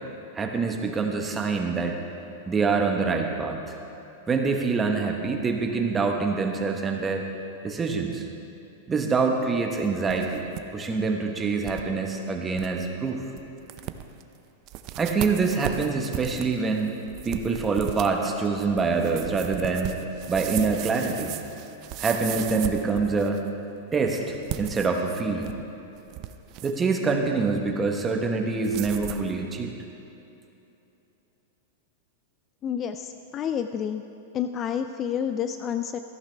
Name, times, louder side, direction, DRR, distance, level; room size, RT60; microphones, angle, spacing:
voice 1, 0.3-2.0 2.5-3.7 4.3-7.2 7.6-8.3 8.9-10.4 10.7-13.2 15.0-17.0 17.2-20.0 20.3-21.3 22.0-23.5 23.9-25.5 26.6-29.7, right 4 dB, 15° right, 3 dB, 1.0 m, -25 dB
sound 1, 9.8-10.6 10.9-11.0 11.6-11.8 12.3-12.4 12.6-12.9 13.4-13.5 13.7-14.2 14.7-23.5 24.3-25.6 26.0-26.9 28.6-29.3, right 12 dB, 40° right, 0.5 m, -36 dB
voice 2, 32.6-34.0 34.3-36.0, left 8 dB, 25° left, 9 dB, 0.3 m, -29 dB
14.0 x 11.5 x 3.3 m, 2.9 s
supercardioid pair, 150°, 0 cm